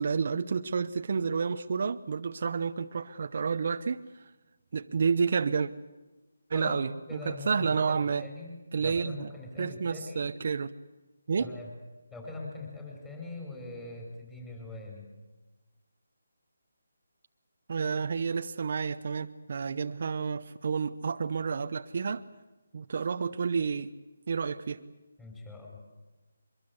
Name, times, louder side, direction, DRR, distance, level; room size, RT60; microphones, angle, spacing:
voice 1, 0.0-4.0 4.7-5.7 6.5-8.3 8.7-9.3 9.6-10.8 11.3-11.5 17.7-22.2 22.7-23.9 24.3-24.8, right 5 dB, 50° right, 9 dB, 0.9 m, -30 dB
voice 2, 7.1-10.3 11.4-11.7 12.1-15.1 25.2-25.8, left 3 dB, 10° left, -1 dB, 5.0 m, -42 dB
23.5 x 22.5 x 8.0 m, 1.1 s
figure-of-eight pair, 160°, 0 cm